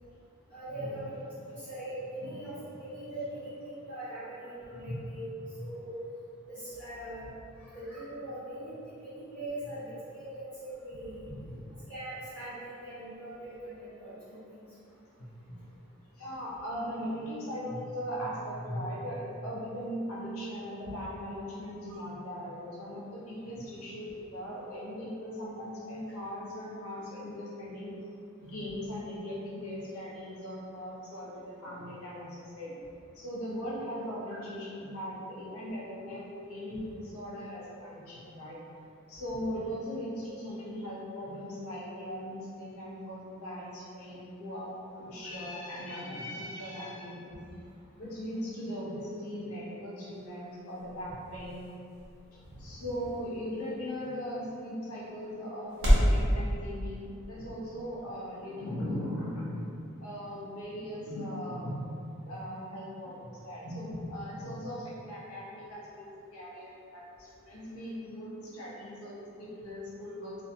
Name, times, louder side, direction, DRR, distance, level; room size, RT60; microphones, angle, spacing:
voice 1, 0.5-1.1 1.4-5.3 5.6-5.9 6.5-7.2 7.7-11.4 11.9-14.6 21.9-22.0 34.3-34.4 52.5-52.6, right 1 dB, 5° left, -15 dB, 1.3 m, -41 dB
voice 2, 2.2-2.6 4.7-5.0 11.4-11.5 15.2-15.6 16.2-27.9 28.4-32.8 33.1-38.6 39.1-47.4 48.0-51.6 52.6-61.9 62.2-70.4, equal, 85° left, -6 dB, 0.7 m, -39 dB
sound 1, 49.9-56.2, equal, 70° right, 0.8 m, -32 dB
2.5 x 2.2 x 2.8 m, 2.5 s
head